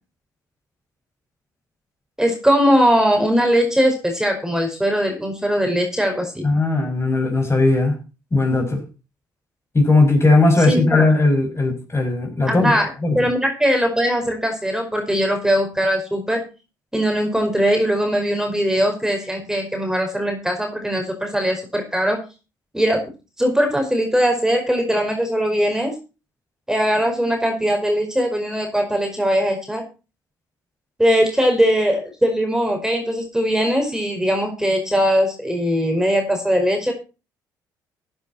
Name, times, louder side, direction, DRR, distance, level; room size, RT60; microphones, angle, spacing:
voice 1, 2.2-6.5 10.7-11.0 12.5-12.9 13.1-16.4 16.9-22.2 22.7-23.0 23.4-25.9 26.7-29.8 31.0-36.9, equal, 5° right, 5.1 m, -20 dB
voice 2, 6.4-8.0 8.3-8.8 9.7-12.7 13.0-13.3, left 2 dB, 25° left, 6.3 m, -17 dB
15.0 x 10.0 x 4.3 m
hypercardioid pair, 50°, 11 cm